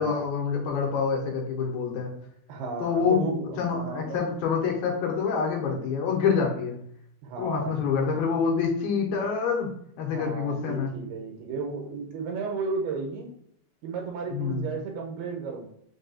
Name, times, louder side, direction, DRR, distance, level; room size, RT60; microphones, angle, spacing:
voice 1, 0.0-2.1 2.8-6.8 7.4-10.9 14.3-14.7, left 6 dB, 80° left, 0 dB, 2.6 m, -27 dB
voice 2, 2.5-4.2 7.2-7.8 10.0-13.3 13.8-15.7, right 4 dB, 85° right, 1 dB, 2.7 m, -34 dB
6.1 x 2.3 x 2.6 m, 0.71 s
omnidirectional pair, 4.3 m